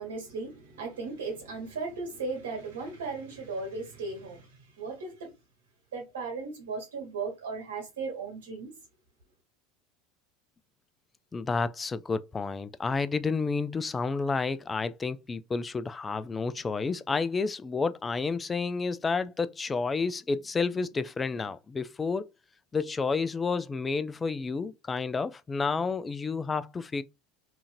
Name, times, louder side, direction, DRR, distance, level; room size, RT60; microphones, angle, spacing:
voice 1, 0.0-5.3 5.9-8.7, right 4 dB, 75° right, 1.4 m, -36 dB
voice 2, 11.3-22.3 22.7-27.0, left 4 dB, 20° left, 0.3 m, -30 dB
2.8 x 2.5 x 2.5 m
hypercardioid pair, 75°, 0 cm